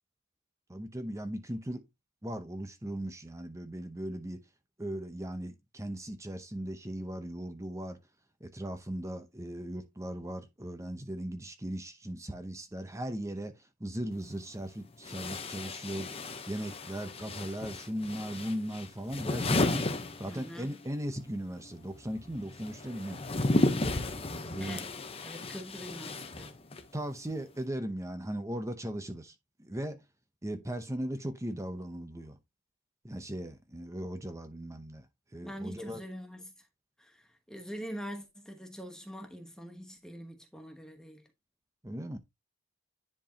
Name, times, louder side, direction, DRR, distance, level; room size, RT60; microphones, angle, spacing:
voice 1, 0.7-1.8 2.2-4.4 4.8-8.0 8.4-16.1 16.5-19.9 20.2-23.2 24.5-24.8 26.9-30.0 30.4-32.4 33.0-35.1 35.3-36.0 41.8-42.2, right 1 dB, 15° right, 0.7 m, -38 dB
sound 1, 14.1-14.2 15.0-20.8 21.1-27.0, left 2 dB, 25° left, 0.8 m, -33 dB
voice 2, 20.3-20.8 24.6-24.9 25.2-26.6 35.4-36.7 37.0-41.3, equal, 5° left, 1.1 m, -44 dB
10.5 x 4.5 x 2.8 m
head